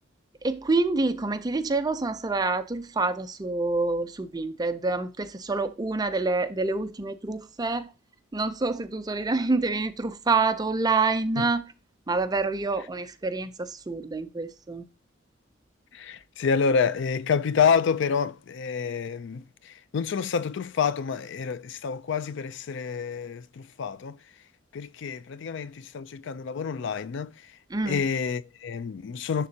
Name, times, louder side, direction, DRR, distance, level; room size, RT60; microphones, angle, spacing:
voice 1, 0.4-7.9 8.3-11.6 12.1-14.9 27.7-28.0, right 3 dB, 20° right, 0.5 m, -27 dB
voice 2, 15.9-24.2 24.7-27.5 27.9-29.5, left 6 dB, 65° left, 0.4 m, -28 dB
10.5 x 3.7 x 2.8 m
head